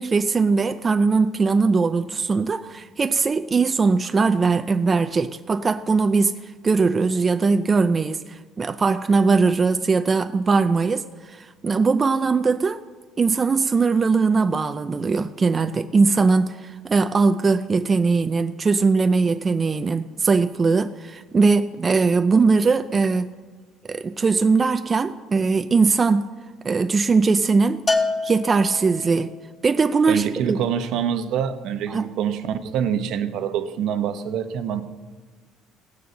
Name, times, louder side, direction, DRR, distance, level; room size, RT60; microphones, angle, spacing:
voice 1, 0.0-12.8 13.2-23.3 23.9-26.3 26.6-27.8 28.2-29.3 29.6-30.6 31.9-32.1, right 4 dB, 25° right, 0.4 m, -20 dB
Bell, 27.9-29.2, left 3 dB, 20° left, 1.2 m, -25 dB
voice 2, 30.1-34.8, right 8 dB, 65° right, 0.9 m, -25 dB
17.0 x 6.7 x 7.8 m
cardioid pair, 130°, 0 cm